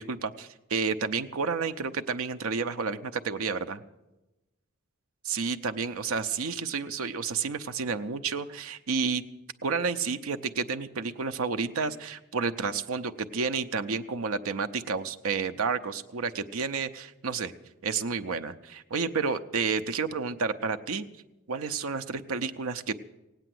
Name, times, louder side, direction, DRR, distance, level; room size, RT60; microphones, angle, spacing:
voice 1, 0.0-3.8 5.2-9.2 9.6-17.5 17.8-21.0 21.5-22.9, right 5 dB, 90° right, 9 dB, 0.6 m, -30 dB
17.0 x 9.0 x 7.7 m, 1.0 s
head